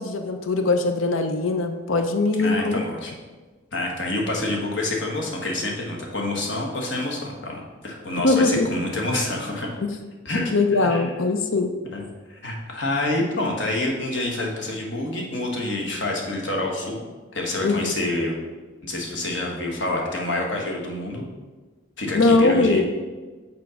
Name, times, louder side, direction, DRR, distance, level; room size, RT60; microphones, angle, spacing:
voice 1, 0.0-2.8 8.2-8.7 10.5-11.7 17.6-17.9 22.1-22.8, left 3 dB, 80° left, 6 dB, 0.6 m, -21 dB
voice 2, 2.4-3.1 3.7-9.7 10.2-11.1 11.9-12.0 12.3-17.1 17.3-18.3 18.8-21.3 22.0-22.8, left 2 dB, 65° left, 0 dB, 1.5 m, -27 dB
6.3 x 4.4 x 5.7 m, 1.3 s
head